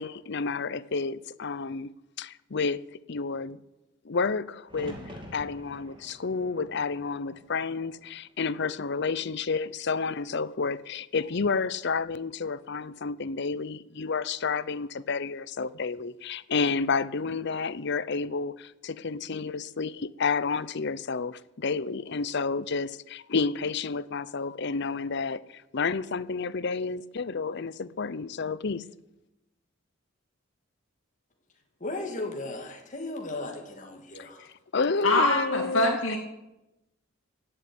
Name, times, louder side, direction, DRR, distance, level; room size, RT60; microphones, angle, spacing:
voice 1, 0.0-1.9 2.2-2.8 3.1-3.6 4.0-28.8 34.2-34.3 34.7-36.0, left 4 dB, 60° left, 0.7 m, -30 dB
sound 1, 4.7-8.7 9.1-9.9 11.7-12.2, equal, 25° right, 2.7 m, -48 dB
voice 2, 31.8-34.5, left 2 dB, 40° left, 2.5 m, -36 dB
voice 3, 35.0-36.2, left 2 dB, 80° left, 2.3 m, -24 dB
16.5 x 7.9 x 9.7 m
head